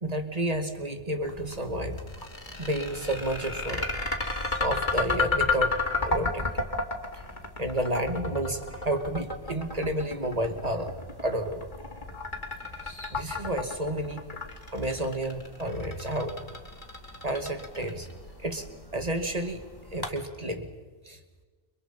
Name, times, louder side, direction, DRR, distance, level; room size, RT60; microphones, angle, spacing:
voice 1, 0.0-2.1 2.6-3.9 4.6-5.8 6.0-6.5 7.1-7.2 7.6-11.7 13.1-14.2 14.7-16.4 17.2-18.1 18.4-18.7 18.9-19.7 19.9-20.7 21.0-21.2, right 1 dB, 30° right, 6 dB, 2.5 m, -31 dB
sound 1, 1.2-20.1, left 1 dB, 20° left, 2.8 m, -48 dB
sound 2, 2.0-18.1, left 3 dB, 40° left, 3.6 m, -31 dB
30.0 x 27.0 x 5.9 m, 1.3 s
omnidirectional pair, 1.2 m